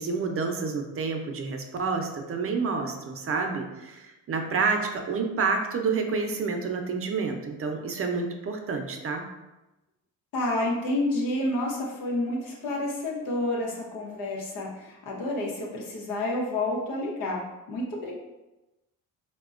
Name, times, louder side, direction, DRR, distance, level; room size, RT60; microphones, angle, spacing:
voice 1, 0.0-9.2, right 4 dB, 45° right, 4 dB, 0.5 m, -29 dB
voice 2, 10.3-18.2, left 1 dB, 90° left, -2 dB, 0.8 m, -29 dB
4.1 x 2.1 x 2.4 m, 1.0 s
supercardioid pair, 65°, 33 cm